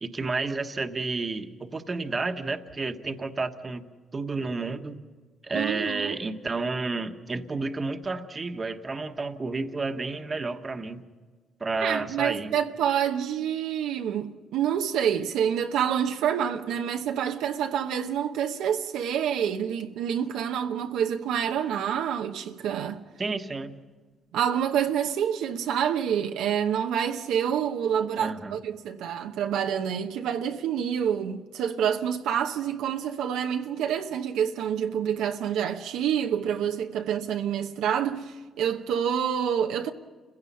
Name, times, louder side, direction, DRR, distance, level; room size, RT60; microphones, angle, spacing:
voice 1, 0.0-3.8 4.1-5.0 5.4-11.0 11.6-12.5 23.2-23.7 28.2-28.6, right 3 dB, 30° right, 1.3 m, -31 dB
voice 2, 5.5-6.2 11.8-23.0 24.3-39.9, right 8 dB, 90° right, 0.9 m, -27 dB
29.5 x 16.5 x 5.6 m
cardioid pair, 90°, 0 cm